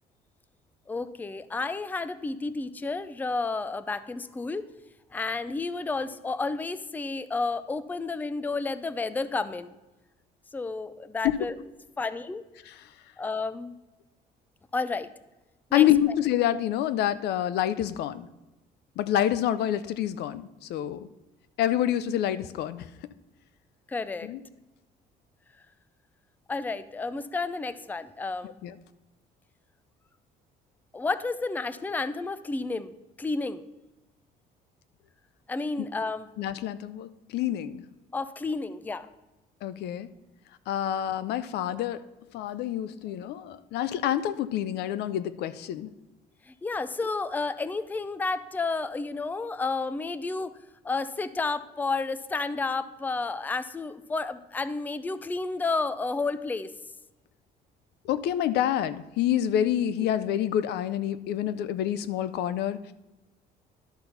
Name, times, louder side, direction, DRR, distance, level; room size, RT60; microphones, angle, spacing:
voice 1, 0.9-4.7 5.1-9.8 10.5-11.6 12.0-12.4 13.2-13.7 14.7-15.1 15.7-15.9 23.9-24.3 26.5-28.6 30.9-32.9 33.2-33.6 35.5-36.3 38.1-39.1 46.5-50.6 50.8-56.7, left 3 dB, 10° left, 13 dB, 0.4 m, -31 dB
voice 2, 15.7-18.3 19.0-21.1 21.6-22.9 24.2-24.4 28.6-28.7 35.8-35.9 36.4-37.8 39.6-40.1 40.7-42.0 42.3-45.9 58.0-62.9, left 11 dB, 75° left, 14 dB, 0.5 m, -27 dB
11.5 x 4.0 x 5.7 m, 1.0 s
cardioid pair, 110°, 17 cm